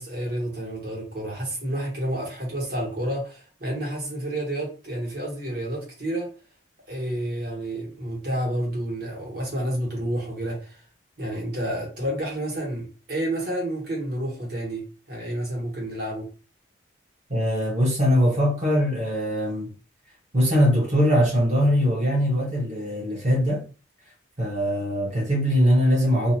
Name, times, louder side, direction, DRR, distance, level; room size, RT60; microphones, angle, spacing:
voice 1, 0.0-6.3 6.9-10.8 11.2-16.3, right 1 dB, 50° right, 1.2 m, -30 dB
voice 2, 17.3-19.7 20.3-23.7 24.4-26.3, equal, 35° right, 0.8 m, -21 dB
2.6 x 2.1 x 2.8 m
head